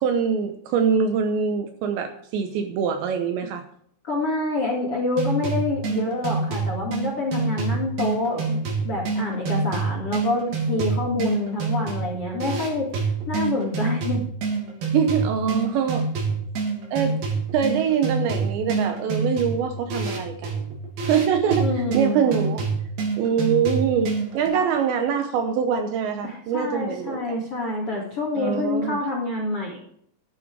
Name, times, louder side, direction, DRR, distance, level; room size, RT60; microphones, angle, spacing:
voice 1, 0.0-3.6 14.9-16.1 16.9-17.2 17.5-20.7 21.0-22.7 23.2-27.4 28.3-29.0, right 7 dB, 75° right, 7 dB, 2.8 m, -24 dB
voice 2, 4.0-12.9 13.3-14.2 21.6-22.2 26.2-29.8, left 2 dB, 40° left, 0 dB, 2.1 m, -27 dB
sound 1, 5.2-24.5, right 4 dB, 50° right, 4.4 m, -27 dB
11.5 x 11.0 x 4.7 m, 0.67 s
omnidirectional pair, 5.8 m